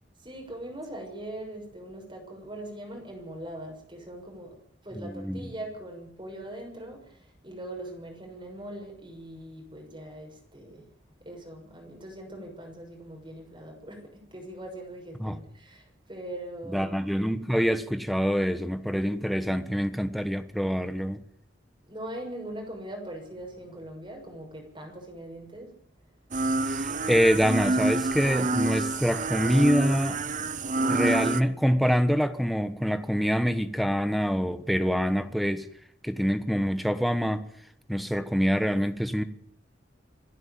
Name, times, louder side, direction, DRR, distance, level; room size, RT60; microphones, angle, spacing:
voice 1, 0.2-4.5 4.8-10.8 11.2-17.0 21.8-25.7, right 1 dB, 25° right, 6.5 m, -41 dB
voice 2, 4.9-5.5 15.2-15.4 16.7-21.2 26.7-30.2 30.9-35.7 36.0-37.5 37.9-39.2, equal, ahead, 1.3 m, -25 dB
sound 1, 26.3-31.4, right 2 dB, 45° right, 0.9 m, -27 dB
27.5 x 11.0 x 9.0 m
head